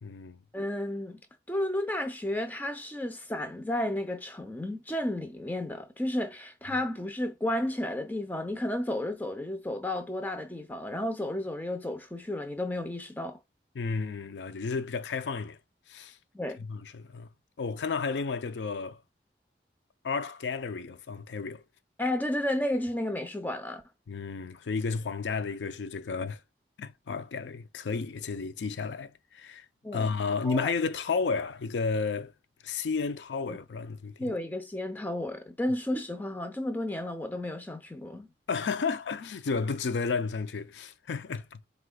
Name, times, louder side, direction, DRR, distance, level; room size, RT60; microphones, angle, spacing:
voice 1, 0.0-0.4 13.8-15.6 15.9-16.2 16.6-17.3 17.6-19.0 20.0-21.6 24.1-26.4 26.8-29.7 29.9-32.3 32.6-34.3 38.5-41.6, left 4 dB, 90° left, 0.5 m, -32 dB
voice 2, 0.5-1.2 1.5-13.4 16.3-16.6 22.0-23.8 29.8-30.1 30.4-30.7 33.5-33.6 34.2-38.3, left 1 dB, 10° left, 0.7 m, -32 dB
4.8 x 3.3 x 2.3 m
head